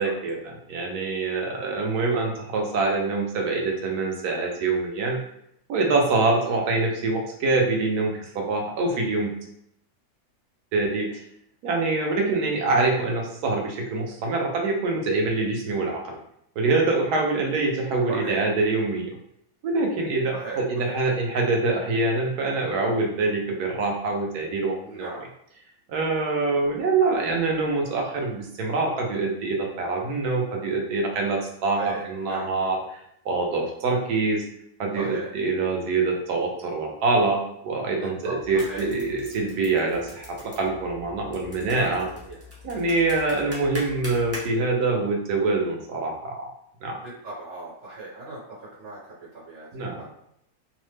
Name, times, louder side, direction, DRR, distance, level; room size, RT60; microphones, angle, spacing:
voice 1, 0.0-5.2 5.7-9.3 10.7-11.2 11.6-16.1 16.6-19.1 19.6-25.1 25.9-32.8 33.2-34.4 34.8-42.1 42.6-46.5 46.8-47.0 49.7-50.1, right 3 dB, 90° right, 1 dB, 1.2 m, -25 dB
voice 2, 18.1-18.4 20.3-21.0 24.8-25.3 31.7-32.5 34.9-35.3 38.0-38.9 41.5-42.4 47.0-50.1, right 2 dB, 60° right, -10 dB, 1.6 m, -38 dB
sound 1, 38.4-44.4, left 1 dB, 15° right, 0.5 m, -42 dB
3.1 x 2.1 x 3.2 m, 0.73 s
omnidirectional pair, 1.6 m